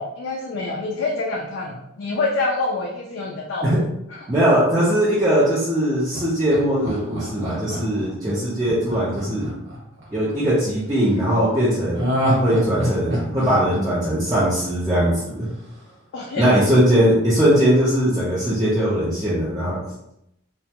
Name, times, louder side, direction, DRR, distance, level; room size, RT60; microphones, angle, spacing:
voice 1, 0.0-3.7 4.1-4.3 16.1-16.7, left 3 dB, 65° left, -2 dB, 0.4 m, -26 dB
voice 2, 4.3-9.5 10.1-12.1 12.4-15.5 16.4-19.8, equal, 20° right, -10 dB, 0.6 m, -20 dB
Laughter, 6.1-10.4 11.9-14.9 15.3-15.4, equal, 65° right, 0.9 m, -26 dB
2.4 x 2.1 x 2.8 m, 0.80 s
head